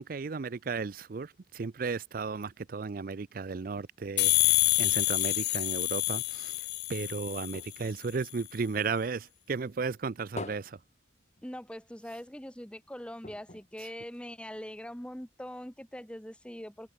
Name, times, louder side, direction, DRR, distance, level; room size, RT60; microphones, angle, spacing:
voice 1, 0.0-10.8 13.8-13.9, right 4 dB, 50° right, 0.5 m, -35 dB
sound 1, 4.2-7.8, left 18 dB, 60° left, 0.9 m, -27 dB
sound 2, 6.6-9.3 9.6-11.9 12.2-12.3 12.6-12.7 13.2-14.7 15.3-15.4, left 2 dB, 40° left, 3.9 m, -47 dB
voice 2, 11.4-16.9, equal, 5° left, 1.2 m, -42 dB
head